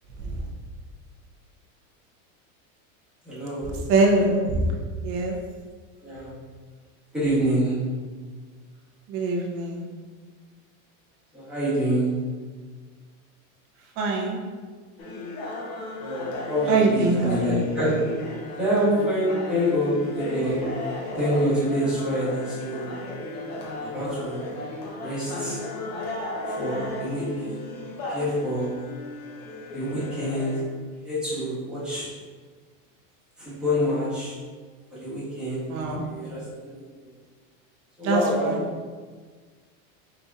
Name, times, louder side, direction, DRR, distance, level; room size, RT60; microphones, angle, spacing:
voice 1, 3.2-3.8 6.0-6.3 7.1-7.7 11.3-12.1 16.0-18.0 18.6-20.6 21.1-22.9 23.8-24.5 25.0-25.6 26.5-27.6 28.1-28.9 29.7-30.5 31.0-32.1 33.4-34.3 34.9-35.7 36.0-36.8 38.0-38.6, equal, ahead, -13 dB, 1.4 m, -26 dB
voice 2, 3.9-4.7 5.0-5.3 9.1-9.8 14.0-14.4 16.7-17.6 35.7-36.0 38.0-38.5, right 3 dB, 30° right, 0 dB, 0.6 m, -23 dB
sound 1, 15.0-30.6, left 1 dB, 40° left, 0.8 m, -35 dB
5.3 x 3.9 x 2.4 m, 1.5 s
supercardioid pair, 175°, 42 cm